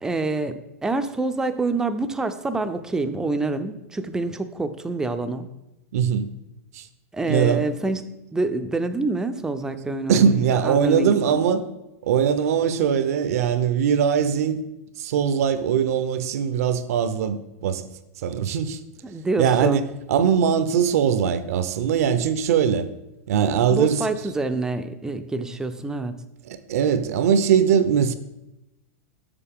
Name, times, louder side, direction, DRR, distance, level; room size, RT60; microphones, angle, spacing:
voice 1, 0.0-5.5 7.1-8.0 8.3-11.4 19.0-19.8 23.7-26.1, right 2 dB, 5° right, 0.4 m, -27 dB
voice 2, 5.9-6.3 6.7-6.8 7.3-7.6 10.1-11.6 12.0-14.6 15.0-17.8 18.2-18.8 19.4-22.9 23.3-24.3 26.5-28.1, right 7 dB, 70° right, 0.6 m, -21 dB
6.8 x 6.6 x 3.6 m
hypercardioid pair, 130°, 8 cm